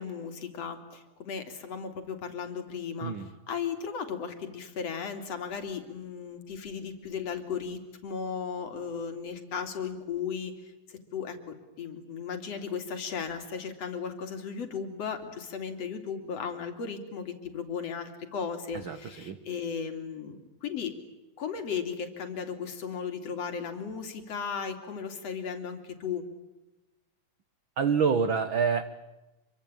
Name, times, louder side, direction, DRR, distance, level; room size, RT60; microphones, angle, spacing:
voice 1, 0.0-20.9 21.4-26.2, left 6 dB, 45° left, 6 dB, 3.8 m, -36 dB
voice 2, 18.7-19.4 27.8-28.8, right 6 dB, 65° right, 11 dB, 1.2 m, -27 dB
27.5 x 24.5 x 8.9 m, 1.0 s
omnidirectional pair, 4.1 m